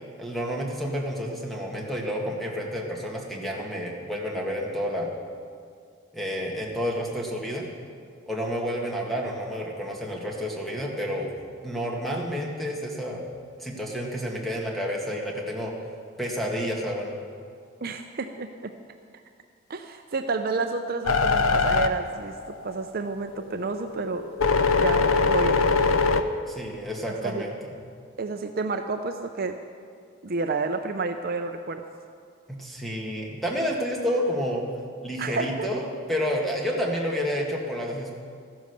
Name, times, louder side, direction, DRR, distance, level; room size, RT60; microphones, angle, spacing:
voice 1, 0.2-5.1 6.1-7.7 8.3-11.3 11.6-13.2 13.6-15.7 16.2-17.1 26.5-27.5 32.6-34.6 35.0-38.1, equal, ahead, -2 dB, 1.8 m, -30 dB
voice 2, 17.8-18.7 19.7-22.3 22.6-24.2 24.8-25.7 27.1-27.4 28.2-29.6 30.2-31.8 35.2-35.7, right 3 dB, 45° right, 6 dB, 0.5 m, -30 dB
sound 1, 21.1-22.9 23.3-26.2, left 4 dB, 85° left, 0.7 m, -22 dB
13.5 x 10.0 x 6.7 m, 2.2 s
head